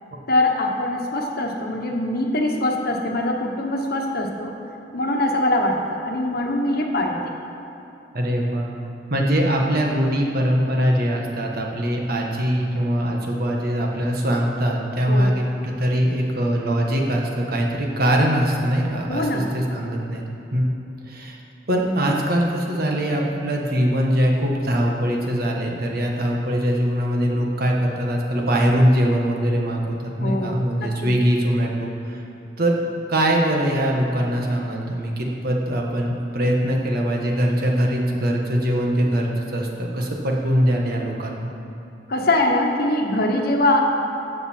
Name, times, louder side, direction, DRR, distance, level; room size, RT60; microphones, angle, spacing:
voice 1, 0.3-4.5 4.9-7.2 15.1-15.3 19.1-19.5 30.2-30.9 42.1-43.9, left 1 dB, 60° left, 2 dB, 1.2 m, -22 dB
voice 2, 8.1-8.7 9.1-20.2 20.5-20.7 21.0-21.4 21.7-32.2 32.6-32.8 33.1-41.5, equal, 55° right, 0 dB, 1.5 m, -22 dB
14.5 x 6.8 x 4.5 m, 3.0 s
head